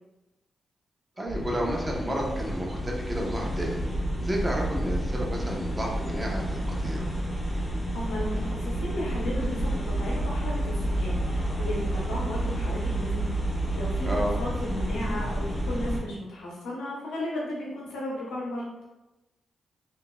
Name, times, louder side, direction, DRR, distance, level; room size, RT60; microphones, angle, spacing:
voice 1, 1.2-3.8 4.2-7.1 14.0-14.4, equal, 20° right, -1 dB, 0.8 m, -31 dB
sound 1, 1.3-16.0, right 1 dB, 20° left, 1.4 m, -29 dB
voice 2, 7.9-18.7, left 1 dB, 90° left, -4 dB, 0.8 m, -35 dB
3.7 x 2.5 x 2.2 m, 1.0 s
cardioid pair, 55°, 0 cm